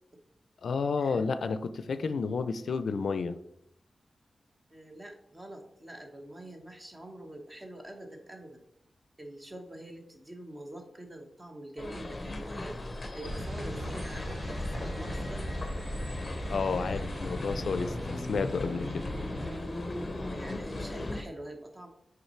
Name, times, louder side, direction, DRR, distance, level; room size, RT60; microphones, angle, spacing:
voice 1, 0.6-3.4 16.5-19.1, left 4 dB, 90° left, 12 dB, 0.4 m, -31 dB
voice 2, 4.7-8.6 9.2-12.8 13.1-15.4 20.1-21.9, right 1 dB, 20° right, 3 dB, 1.0 m, -45 dB
sound 1, 11.8-21.2, left 2 dB, 30° left, 0.6 m, -37 dB
sound 2, 13.2-19.6, equal, 60° right, 1.2 m, -39 dB
5.7 x 3.8 x 4.3 m, 0.74 s
wide cardioid pair, 155°, 0 cm